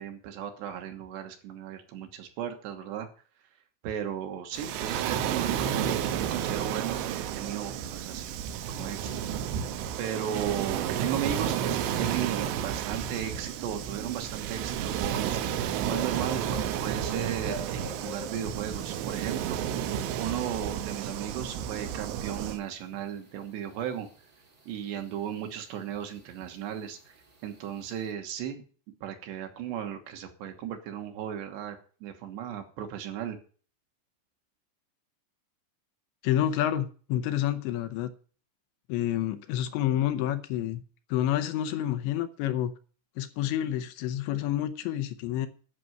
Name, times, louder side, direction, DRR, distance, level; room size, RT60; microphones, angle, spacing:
voice 1, 0.0-3.1 3.8-8.4 8.7-19.6 20.2-24.1 24.7-27.2 27.4-28.6 29.0-33.4, right 9 dB, 70° right, 5 dB, 3.2 m, -36 dB
Waves surf, 4.5-22.6, right 9 dB, 90° right, 3.4 m, -32 dB
sound 1, 10.5-28.1, left 2 dB, 40° right, 1.3 m, -50 dB
voice 2, 36.2-38.1 38.9-40.8 41.1-42.7 43.2-45.5, left 12 dB, 80° left, 9 dB, 2.9 m, -28 dB
11.0 x 6.1 x 9.1 m, 0.41 s
omnidirectional pair, 5.5 m